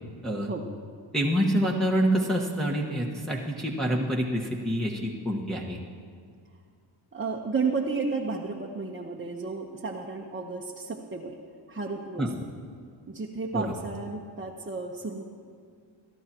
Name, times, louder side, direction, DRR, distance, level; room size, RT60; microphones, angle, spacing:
voice 1, 1.1-5.8 12.2-12.3 13.5-13.7, equal, ahead, -4 dB, 1.5 m, -27 dB
voice 2, 7.1-11.4 11.7-12.5 13.1-15.2, right 4 dB, 25° right, -1 dB, 1.1 m, -32 dB
22.0 x 11.0 x 3.0 m, 2.2 s
supercardioid pair, 55°, 49 cm